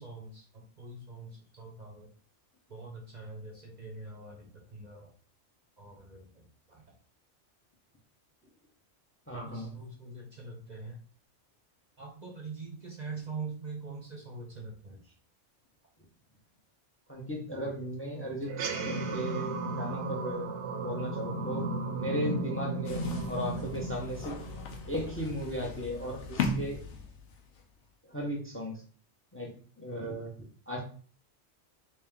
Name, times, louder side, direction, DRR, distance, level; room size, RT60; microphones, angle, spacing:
voice 1, 0.0-2.1 2.7-5.1 5.8-7.0 9.5-11.0 12.0-15.1, right 3 dB, 45° right, -1 dB, 0.7 m, -44 dB
voice 2, 9.3-9.7 17.1-20.5 20.8-21.7 22.0-24.4 24.9-26.8 28.0-28.7 29.3-30.8, equal, 15° left, 0 dB, 0.7 m, -36 dB
sound 1, 18.4-25.2, right 2 dB, 75° right, 0.9 m, -35 dB
sound 2, 22.9-27.6, left 3 dB, 80° left, 1.0 m, -37 dB
3.2 x 2.9 x 3.5 m, 0.43 s
omnidirectional pair, 1.2 m